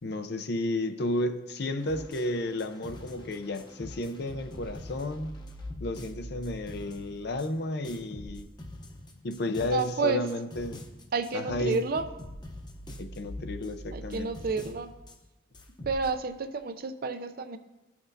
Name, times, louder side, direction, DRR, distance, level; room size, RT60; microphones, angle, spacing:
voice 1, 0.0-5.3 5.8-8.5 9.2-10.9 11.3-11.8 13.0-14.3, left 1 dB, 60° left, 8 dB, 0.6 m, -32 dB
sound 1, 1.8-7.5 7.8-9.9 10.3-15.2 15.5-16.1, left 1 dB, 25° left, 0.8 m, -44 dB
voice 2, 9.6-10.2 11.1-12.0 13.9-14.9 15.9-17.6, right 4 dB, 50° right, 9 dB, 0.5 m, -30 dB
15.5 x 5.9 x 2.7 m, 1.1 s
head